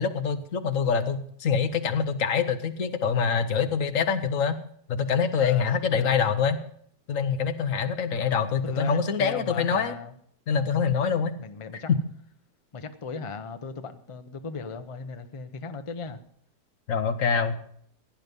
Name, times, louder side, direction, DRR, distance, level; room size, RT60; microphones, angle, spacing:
voice 1, 0.0-4.5 4.9-6.6 7.1-9.9 10.5-11.3 16.9-17.6, left 6 dB, 55° left, 9 dB, 1.3 m, -25 dB
voice 2, 5.4-6.3 8.6-10.1 11.4-11.9 12.7-16.2, left 4 dB, 35° left, 8 dB, 0.5 m, -37 dB
16.5 x 9.7 x 5.3 m, 0.66 s
omnidirectional pair, 1.9 m